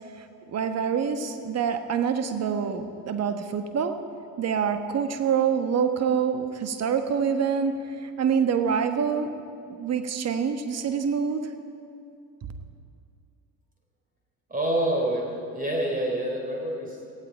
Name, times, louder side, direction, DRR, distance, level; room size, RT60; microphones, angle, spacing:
voice 1, 0.2-4.0 4.4-9.3 9.8-11.5, right 7 dB, 30° right, 8 dB, 1.3 m, -26 dB
voice 2, 14.5-15.3 15.5-17.1, right 1 dB, 15° right, 0 dB, 3.6 m, -27 dB
18.0 x 15.0 x 4.5 m, 2.5 s
figure-of-eight pair, 60°, 48 cm